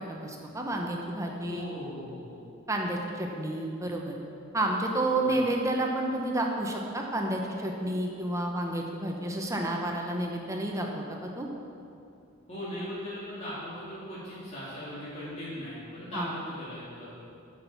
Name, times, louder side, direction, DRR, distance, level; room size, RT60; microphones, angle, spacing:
voice 1, 0.0-1.7 2.7-4.2 4.5-11.5 16.1-16.3, right 1 dB, 15° right, 0 dB, 0.9 m, -30 dB
voice 2, 1.5-2.4 5.2-5.5 12.5-17.1, equal, 35° left, -10 dB, 2.5 m, -39 dB
9.4 x 6.2 x 7.1 m, 2.6 s
head